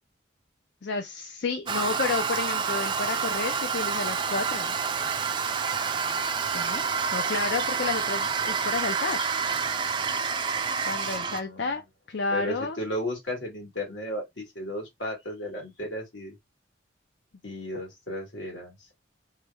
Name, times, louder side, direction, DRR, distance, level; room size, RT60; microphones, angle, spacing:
voice 1, 0.8-4.8 6.5-6.9 7.1-9.3 10.8-11.8 12.1-12.8, left 4 dB, 65° left, 0.4 m, -31 dB
Toilet flush, 1.7-11.4, right 5 dB, 25° right, 0.3 m, -28 dB
voice 2, 11.2-11.7 12.3-16.3 17.4-18.9, left 1 dB, 80° left, 1.8 m, -34 dB
3.2 x 2.2 x 3.3 m
head